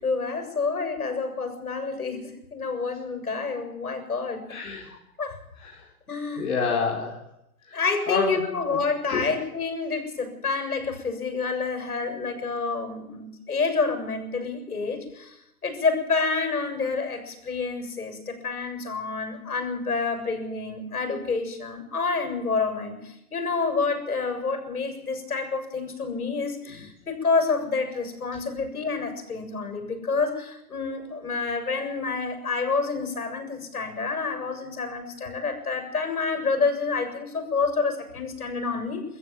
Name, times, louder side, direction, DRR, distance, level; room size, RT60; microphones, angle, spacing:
voice 1, 0.0-4.4 4.9-5.4 6.1-6.5 7.7-15.4 15.6-39.0, left 4 dB, 80° left, 7 dB, 7.3 m, -28 dB
voice 2, 4.5-4.9 5.6-5.9 6.4-7.2 7.7-7.8 8.1-8.5 8.7-8.8 9.1-9.3, left 5 dB, 65° left, -1 dB, 4.6 m, -27 dB
23.5 x 14.5 x 9.3 m, 0.81 s
hypercardioid pair, 130°, 44 cm